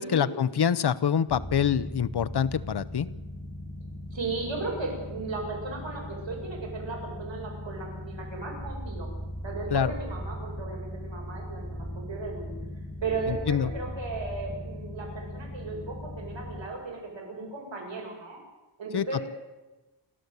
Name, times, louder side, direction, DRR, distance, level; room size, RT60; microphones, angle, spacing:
voice 1, 0.0-3.1 9.7-9.9 13.3-13.7 18.9-19.3, left 8 dB, 60° left, 14 dB, 0.9 m, -26 dB
sound 1, 1.3-16.7, equal, 20° left, 2.4 m, -38 dB
voice 2, 4.1-9.1 9.4-12.5 13.0-18.4 18.8-19.3, right 3 dB, 75° right, 0 dB, 7.9 m, -36 dB
29.0 x 13.0 x 8.3 m, 1.1 s
wide cardioid pair, 90°, 45 cm